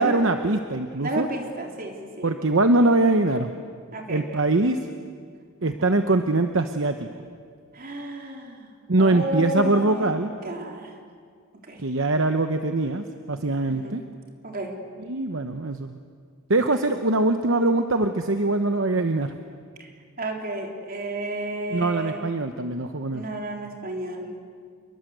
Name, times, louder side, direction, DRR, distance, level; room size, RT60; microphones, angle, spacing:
voice 1, 0.0-1.3 2.2-3.5 4.1-4.8 5.6-7.1 8.9-10.3 11.8-14.0 15.0-16.0 16.5-19.3 21.7-23.2, right 2 dB, 60° right, 7 dB, 1.0 m, -22 dB
voice 2, 1.0-2.3 3.9-4.4 7.7-8.7 9.0-11.0 11.6-11.8 13.7-14.0 14.4-14.7 19.8-19.9 20.2-22.2 23.1-24.3, right 1 dB, 40° right, 1 dB, 3.6 m, -32 dB
28.0 x 22.0 x 8.0 m, 2.1 s
head